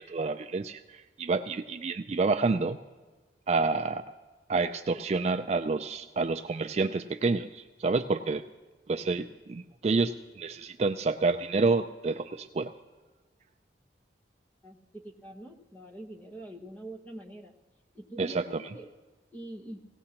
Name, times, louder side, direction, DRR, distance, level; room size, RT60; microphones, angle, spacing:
voice 1, 0.0-2.8 3.5-4.0 4.5-8.4 8.9-12.7 18.2-18.7, right 3 dB, 35° right, 7 dB, 0.3 m, -28 dB
voice 2, 14.6-17.5 17.9-18.9 19.3-19.8, right 1 dB, 10° left, 1 dB, 1.0 m, -45 dB
18.0 x 17.0 x 2.9 m, 1.3 s
head